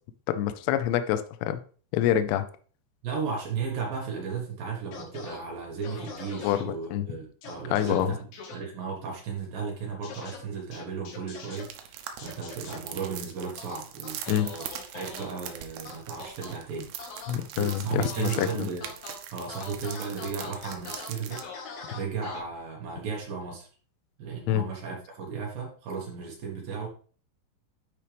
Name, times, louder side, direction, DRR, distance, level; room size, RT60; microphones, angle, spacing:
voice 1, 0.3-1.6 1.9-2.5 6.4-7.1 7.7-8.1 14.3-14.5 17.3-18.7 24.5-24.6, left 11 dB, 80° left, 10 dB, 2.6 m, -26 dB
voice 2, 3.0-14.7 14.9-16.9 17.4-18.9 19.3-21.4 21.9-23.7 24.2-26.9, right 5 dB, 65° right, -1 dB, 2.4 m, -35 dB
sound 1, 4.9-5.4 5.8-6.6 7.4-8.0 8.3-8.6 10.0-10.4 10.7-11.6 12.2-12.8 13.6-15.3 15.9-16.5 17.0-17.3 17.7-18.5 18.8-19.2 19.5-22.4, left 5 dB, 65° left, 3.4 m, -42 dB
sound 2, 11.5-21.4, right 10 dB, 85° right, 2.2 m, -41 dB
12.5 x 4.5 x 3.4 m, 0.42 s
omnidirectional pair, 5.7 m